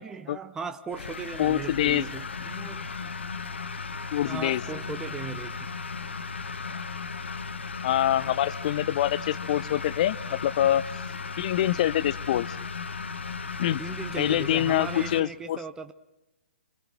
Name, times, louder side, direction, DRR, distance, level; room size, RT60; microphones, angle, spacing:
voice 1, 0.0-2.9 4.3-5.6 13.8-15.9, right 5 dB, 10° right, 0.8 m, -37 dB
sound 1, 0.9-15.2, left 5 dB, 70° left, 1.4 m, -36 dB
voice 2, 1.4-2.1 4.1-4.6 7.8-10.8 11.4-12.5 13.6-13.8 14.2-15.6, left 12 dB, 40° left, 0.7 m, -25 dB
28.0 x 24.0 x 6.0 m
figure-of-eight pair, 125°, 6 cm